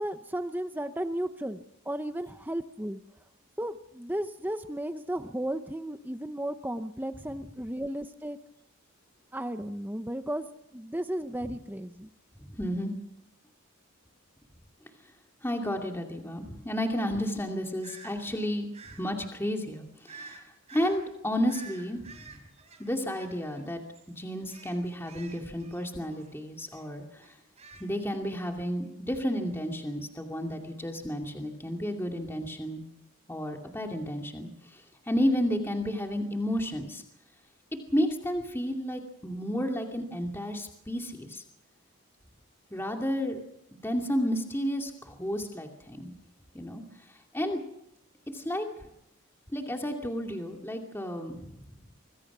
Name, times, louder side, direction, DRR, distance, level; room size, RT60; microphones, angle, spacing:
voice 1, 0.0-3.0 3.6-8.4 9.3-10.5 10.7-12.1, right 1 dB, 10° right, 9 dB, 0.8 m, -34 dB
voice 2, 12.4-12.9 15.4-18.7 19.0-20.4 20.7-22.4 22.8-23.8 24.1-27.3 27.8-32.8 33.3-34.8 35.1-37.0 37.9-41.4 42.7-43.4 43.7-46.1 46.5-46.8 47.3-47.6 48.3-48.7 49.5-51.6, equal, 10° left, 2 dB, 2.5 m, -32 dB
sound 1, 17.8-18.1 18.7-19.0 20.1-20.4 20.7-21.0 21.5-23.7 23.9-24.1 24.5-26.3 26.7-26.8 27.2-28.1, right 5 dB, 30° right, 4.8 m, -49 dB
26.0 x 21.0 x 6.1 m, 0.79 s
head